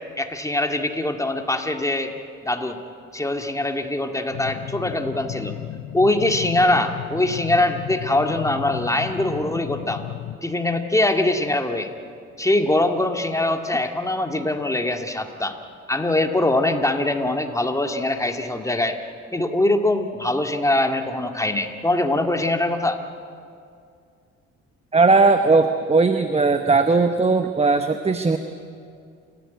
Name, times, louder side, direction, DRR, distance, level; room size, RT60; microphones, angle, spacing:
voice 1, 0.2-2.1 2.4-2.8 3.1-5.5 5.9-10.0 10.4-11.9 12.4-15.5 15.9-19.0 19.3-23.0, left 2 dB, 10° left, 5 dB, 2.1 m, -22 dB
sound 1, 4.3-10.4, left 13 dB, 75° left, 0.7 m, -34 dB
voice 2, 24.9-28.4, right 3 dB, 20° right, 8 dB, 1.0 m, -18 dB
29.5 x 14.0 x 9.4 m, 2.3 s
cardioid pair, 90°, 30 cm